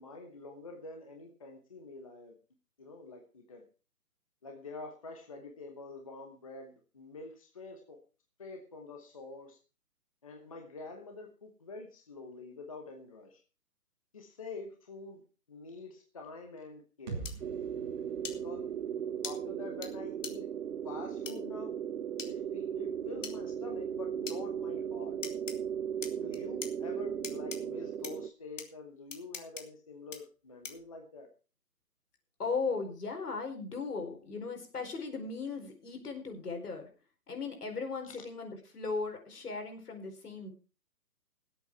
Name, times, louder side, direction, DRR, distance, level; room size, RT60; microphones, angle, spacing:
voice 1, 0.0-2.3 2.8-3.6 4.4-8.0 8.4-9.6 10.2-13.4 14.1-15.2 15.5-17.3 18.0-18.8 19.2-20.5 20.8-21.7 22.3-25.2 26.2-31.3 38.0-38.2, left 3 dB, 20° left, 3 dB, 1.0 m, -47 dB
sound 1, 17.1-20.9, right 4 dB, 25° right, 2.8 m, -47 dB
sound 2, 17.3-17.4 18.2-18.4 19.2-19.3 19.8-19.9 20.2-20.3 21.3-21.4 22.2-22.3 23.2-23.4 24.3-24.4 25.2-25.6 26.0-26.7 27.2-27.6 28.0-28.1 28.6-28.7 29.1-29.6 30.1-30.2 30.6-30.9, left 5 dB, 50° left, 2.0 m, -40 dB
sound 3, 17.4-28.3, right 8 dB, 60° right, 0.7 m, -37 dB
voice 2, 32.4-36.9 37.3-40.5, left 4 dB, 70° left, 4 dB, 4.6 m, -37 dB
18.0 x 8.1 x 4.6 m, 0.35 s
hypercardioid pair, 170°, 48 cm